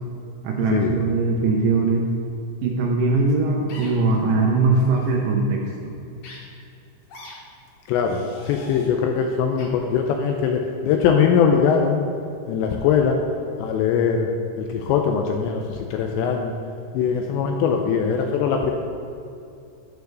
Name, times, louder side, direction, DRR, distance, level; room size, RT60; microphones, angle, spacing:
voice 1, 0.4-2.1 2.6-5.6, right 3 dB, 75° right, -1 dB, 2.5 m, -20 dB
sound 1, 3.7-3.9 4.9-5.1 6.2-6.4 7.1-7.3 8.0-8.9 9.6-9.7, left 2 dB, 60° left, 2.8 m, -42 dB
voice 2, 7.9-8.2 8.5-12.0 12.5-13.2 13.6-14.3 14.6-16.5 16.9-18.7, left 7 dB, 85° left, 3 dB, 2.6 m, -21 dB
9.2 x 4.8 x 6.6 m, 2.5 s
omnidirectional pair, 5.5 m